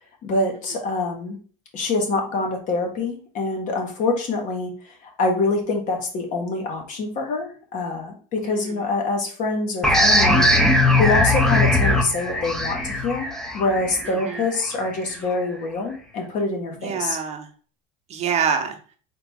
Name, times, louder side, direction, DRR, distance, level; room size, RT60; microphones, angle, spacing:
voice 1, 0.2-1.4 1.7-4.7 5.2-10.5 11.0-17.2, left 3 dB, 50° left, 2 dB, 1.3 m, -25 dB
voice 2, 8.4-8.9 14.0-14.5 16.8-17.5 18.1-18.8, right 7 dB, 40° right, 5 dB, 0.8 m, -27 dB
sound 1, 9.8-15.2, left 1 dB, 5° left, 0.6 m, -20 dB
4.0 x 2.9 x 3.5 m, 0.41 s
supercardioid pair, 115°, 17 cm